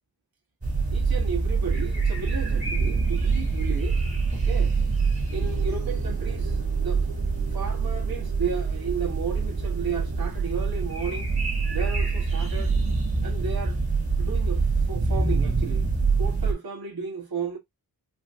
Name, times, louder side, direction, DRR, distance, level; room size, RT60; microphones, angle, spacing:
sound 1, 0.6-16.5, right 4 dB, 40° right, 2.0 m, -25 dB
voice 1, 0.9-4.0 4.3-4.7 5.3-7.0 7.5-11.3 11.7-12.7 13.2-13.8 14.2-15.8 16.2-17.6, right 6 dB, 80° right, 1.4 m, -34 dB
sound 2, 5.3-10.3, right 8 dB, 60° right, 0.9 m, -44 dB
4.8 x 2.7 x 2.5 m
wide cardioid pair, 95°, 36 cm